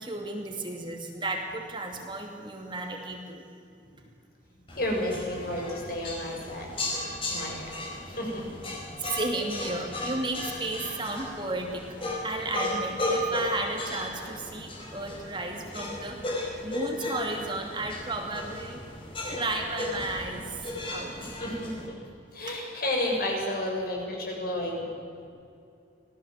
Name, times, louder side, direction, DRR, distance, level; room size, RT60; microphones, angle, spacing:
voice 1, 0.0-3.4 9.0-11.8 12.2-16.3 16.6-18.8 19.3-21.1, right 2 dB, 25° right, 2 dB, 2.7 m, -33 dB
voice 2, 4.7-6.7 7.3-7.8 8.1-8.5 21.2-22.0 22.3-24.9, left 1 dB, 50° left, -1 dB, 7.0 m, -31 dB
sound 1, 4.7-21.9, left 1 dB, 30° left, 4.9 m, -35 dB
26.0 x 18.0 x 7.6 m, 2.5 s
head